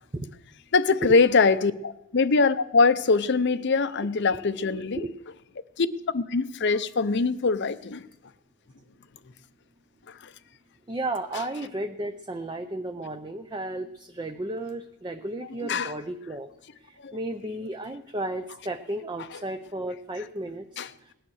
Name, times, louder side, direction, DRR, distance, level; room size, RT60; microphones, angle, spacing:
voice 1, 0.7-5.0 5.8-5.9 6.1-8.0 15.6-15.9 17.0-17.1 20.8-20.9, left 4 dB, 50° left, 0.6 m, -23 dB
voice 2, 10.9-16.5 16.8-21.1, right 1 dB, 20° right, 0.5 m, -33 dB
18.5 x 10.0 x 6.4 m
head